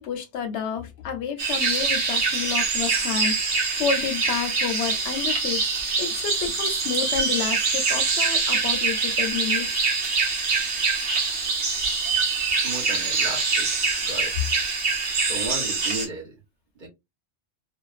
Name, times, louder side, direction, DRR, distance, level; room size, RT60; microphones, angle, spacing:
voice 1, 0.0-5.6 6.0-9.7, left 7 dB, 85° left, 0.9 m, -30 dB
sound 1, 1.4-16.1, right 4 dB, 75° right, 1.0 m, -24 dB
voice 2, 12.5-14.3 15.0-16.4 16.8-16.9, right 2 dB, 50° right, 1.0 m, -36 dB
2.5 x 2.2 x 2.3 m
omnidirectional pair, 1.1 m